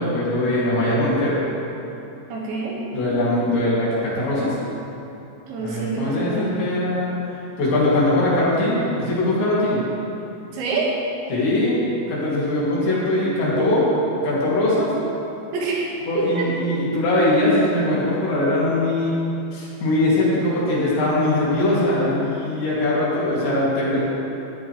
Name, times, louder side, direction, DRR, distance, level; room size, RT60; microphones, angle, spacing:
voice 1, 0.0-1.4 2.9-4.6 5.6-7.2 7.6-9.8 11.3-14.9 16.1-19.2 19.5-24.0, left 1 dB, 75° left, -8 dB, 5.2 m, -21 dB
voice 2, 2.3-2.8 5.5-6.6 10.5-10.9 15.5-15.9 16.4-16.5, right 4 dB, 80° right, -4 dB, 4.1 m, -26 dB
16.0 x 10.5 x 3.4 m, 2.8 s
omnidirectional pair, 5.2 m